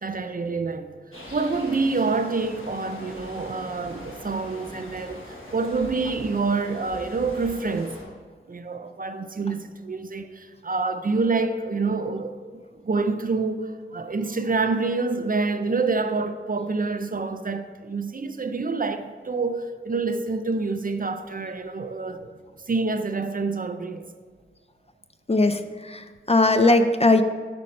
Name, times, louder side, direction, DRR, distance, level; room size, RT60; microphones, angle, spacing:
voice 1, 0.0-0.9 1.3-8.0 8.5-12.4 12.8-22.3 22.7-24.1, right 3 dB, 45° right, 0.4 m, -27 dB
sound 1, 1.1-8.0, left 1 dB, 85° left, 1.3 m, -41 dB
voice 2, 25.3-27.2, left 2 dB, 30° left, 0.4 m, -19 dB
6.5 x 5.2 x 4.3 m
wide cardioid pair, 50°, 20 cm